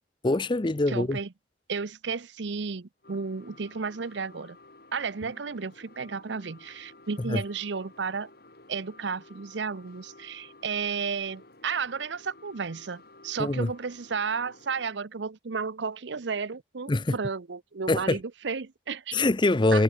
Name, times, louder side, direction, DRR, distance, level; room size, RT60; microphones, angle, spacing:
voice 1, 0.2-1.2 7.3-7.4 13.4-13.7 16.9-17.1 17.9-18.2 19.1-19.8, left 2 dB, 25° left, 0.6 m, -24 dB
voice 2, 0.9-1.3 1.7-4.6 4.9-8.3 8.7-19.2 19.7-19.8, right 5 dB, 70° right, 0.7 m, -33 dB
sound 1, 3.0-14.9, left 2 dB, 55° left, 4.1 m, -53 dB
head